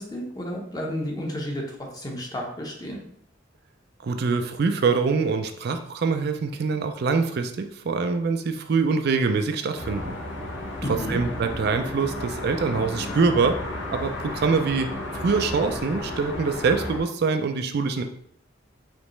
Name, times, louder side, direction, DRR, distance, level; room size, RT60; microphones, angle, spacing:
voice 1, 0.0-1.6 1.9-3.0 10.8-11.2, equal, 20° left, 0 dB, 0.9 m, -31 dB
voice 2, 4.0-10.1 10.9-13.6 13.9-18.0, right 4 dB, 55° right, 7 dB, 0.4 m, -24 dB
sound 1, 9.8-17.0, left 1 dB, 75° left, 1.1 m, -33 dB
5.0 x 3.1 x 3.1 m, 0.68 s
head